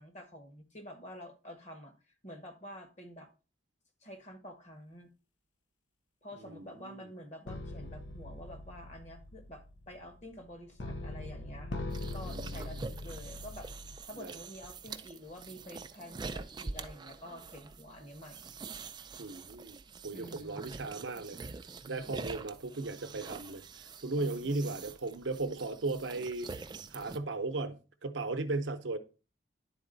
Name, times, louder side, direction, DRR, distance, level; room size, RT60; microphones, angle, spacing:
voice 1, 0.0-1.9 2.2-3.3 4.0-5.1 6.2-11.8 12.1-13.7 14.1-18.4 20.1-20.8 24.2-24.8, equal, 35° left, 1.3 m, -48 dB
voice 2, 6.3-7.1 12.3-12.8 14.2-14.3 19.2-21.4 21.9-26.6 26.9-29.0, right 3 dB, 75° right, 0.7 m, -37 dB
sound 1, 7.5-14.1 14.6-14.9, left 2 dB, 70° left, 0.6 m, -42 dB
sound 2, 11.9-27.2, right 4 dB, 25° right, 0.4 m, -45 dB
10.5 x 4.1 x 3.9 m
head